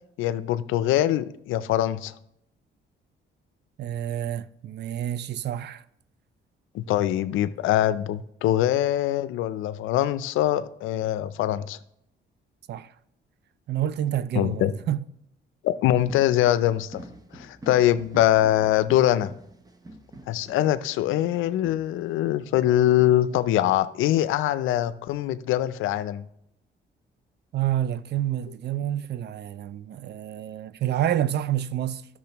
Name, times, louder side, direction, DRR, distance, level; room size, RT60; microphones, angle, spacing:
voice 1, 0.2-2.1 6.7-11.8 14.4-14.7 15.6-17.0 17.3-19.3 20.3-26.3, left 13 dB, 90° left, 0.5 m, -23 dB
voice 2, 3.8-5.8 12.7-12.9 13.7-15.0 27.5-32.1, right 11 dB, 60° right, 0.5 m, -28 dB
sound 1, 16.0-23.9, right 1 dB, 20° right, 0.9 m, -47 dB
12.0 x 6.2 x 3.0 m
cardioid pair, 90°, 20 cm